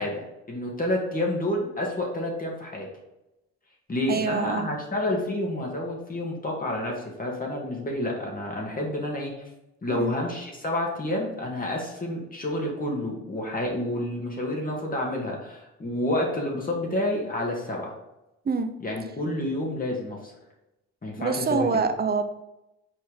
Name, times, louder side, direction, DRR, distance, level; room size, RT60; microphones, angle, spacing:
voice 1, 0.0-2.9 3.9-9.3 9.8-17.9 18.8-20.3 21.0-21.7, left 1 dB, 30° left, -1 dB, 2.0 m, -29 dB
voice 2, 4.1-4.7 10.0-10.2 18.4-18.7 21.2-22.2, right 5 dB, 30° right, 8 dB, 0.8 m, -25 dB
6.0 x 4.6 x 3.6 m, 0.93 s
cardioid pair, 90°, 30 cm